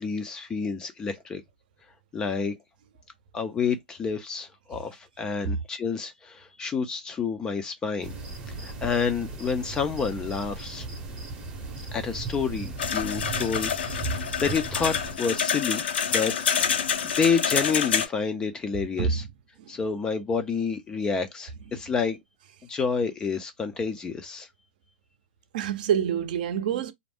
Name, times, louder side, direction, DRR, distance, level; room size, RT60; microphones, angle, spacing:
voice 1, 0.0-1.4 2.1-2.6 3.3-8.1 8.6-10.9 11.9-15.8 16.1-16.3 17.0-19.2 19.7-22.2 22.7-24.5, left 5 dB, 15° left, 0.4 m, -29 dB
sound 1, 8.0-15.2, right 3 dB, 20° right, 0.7 m, -36 dB
sound 2, 12.8-18.1, left 7 dB, 75° left, 0.7 m, -27 dB
voice 2, 25.5-26.9, right 7 dB, 50° right, 0.6 m, -26 dB
2.4 x 2.0 x 3.4 m
hypercardioid pair, 150°, 6 cm